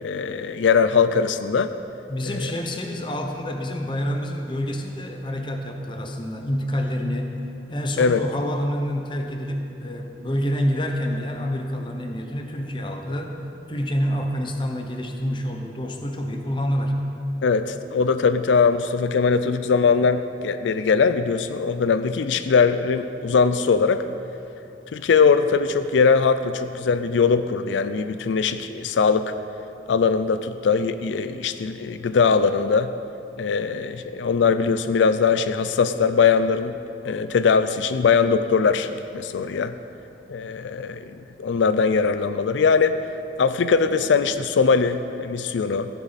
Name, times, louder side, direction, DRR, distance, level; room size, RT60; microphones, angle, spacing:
voice 1, 0.0-1.7 2.2-2.5 8.0-8.2 17.4-24.0 24.9-29.3 29.9-32.9 33.4-36.8 37.0-39.7 40.3-41.1 41.4-43.0 43.4-45.9, left 5 dB, 90° left, 11 dB, 0.4 m, -21 dB
voice 2, 2.1-7.4 7.7-13.4 13.7-17.0, equal, 25° left, 3 dB, 0.9 m, -27 dB
15.0 x 10.0 x 4.1 m, 2.8 s
head